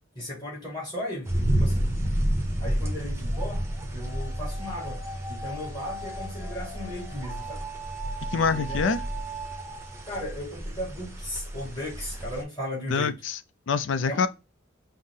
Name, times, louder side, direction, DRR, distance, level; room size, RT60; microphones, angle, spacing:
voice 1, 0.2-1.3 1.6-1.9 2.6-3.6 3.9-5.0 5.3-7.7 8.3-9.0 10.1-13.2 14.1-14.2, left 1 dB, 20° left, 1.9 m, -36 dB
sound 1, 1.3-12.4, equal, 15° right, 0.7 m, -31 dB
sound 2, 2.5-10.1, right 2 dB, 5° left, 1.5 m, -41 dB
voice 2, 8.3-9.0 12.9-13.4 13.7-14.3, left 5 dB, 65° left, 0.4 m, -25 dB
5.6 x 2.0 x 3.6 m
head